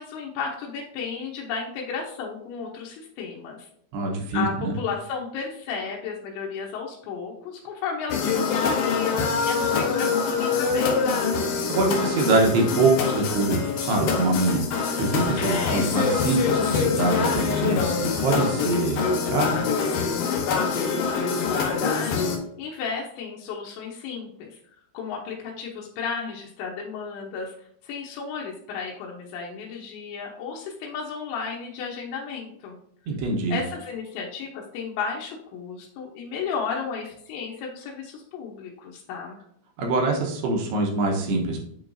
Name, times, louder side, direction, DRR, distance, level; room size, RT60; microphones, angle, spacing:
voice 1, 0.0-3.7 4.3-11.1 20.7-22.3 22.6-24.6 24.9-27.5 27.8-32.8 33.5-39.4, left 5 dB, 90° left, -1 dB, 3.2 m, -33 dB
voice 2, 3.9-4.7 11.7-19.7 33.1-33.6 39.8-41.6, right 2 dB, 75° right, 0 dB, 3.0 m, -24 dB
sound 1, 8.1-22.4, left 5 dB, 70° left, 2.5 m, -25 dB
9.0 x 4.6 x 2.6 m, 0.69 s
omnidirectional pair, 5.0 m